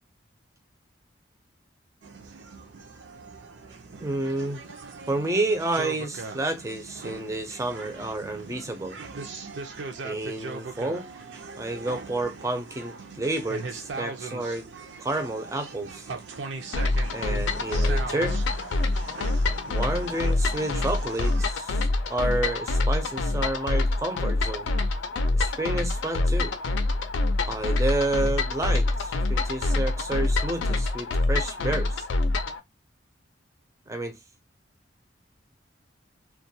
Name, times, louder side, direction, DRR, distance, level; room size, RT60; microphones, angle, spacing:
sound 1, 2.0-21.5, right 4 dB, 75° right, 0.5 m, -40 dB
voice 1, 4.0-4.6 5.1-9.0 10.0-11.1 11.6-14.7 15.0-16.1 17.1-18.4 19.7-24.7 25.3-26.5 27.4-32.1 33.9-34.1, right 2 dB, 15° right, 0.4 m, -30 dB
sound 2, 16.7-32.6, left 2 dB, 80° left, 0.4 m, -26 dB
2.2 x 2.2 x 2.7 m
head